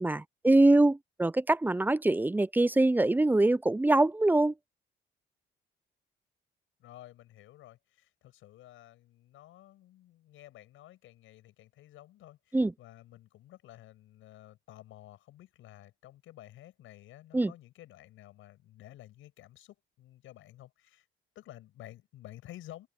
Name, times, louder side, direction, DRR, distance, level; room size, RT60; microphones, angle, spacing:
voice 1, 0.0-4.5 12.5-12.7 17.3-17.5, right 2 dB, 10° right, 0.4 m, -24 dB
voice 2, 6.8-21.1 21.3-22.9, left 14 dB, 85° left, 7.8 m, -52 dB
open air
cardioid pair, 90°, 20 cm